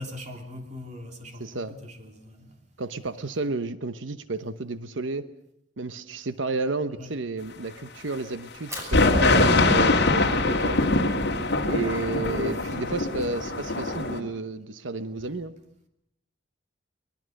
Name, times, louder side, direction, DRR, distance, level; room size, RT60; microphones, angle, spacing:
voice 1, 0.0-2.6 7.0-7.1 12.8-12.9, left 1 dB, 40° right, 3.0 m, -41 dB
voice 2, 1.4-1.8 2.8-5.3 5.8-11.1 11.7-15.5, right 3 dB, 75° right, 1.0 m, -32 dB
Fire, 8.5-14.6, equal, 15° right, 6.5 m, -47 dB
sound 1, 8.9-14.2, left 2 dB, 60° left, 2.1 m, -22 dB
24.0 x 21.0 x 6.5 m
head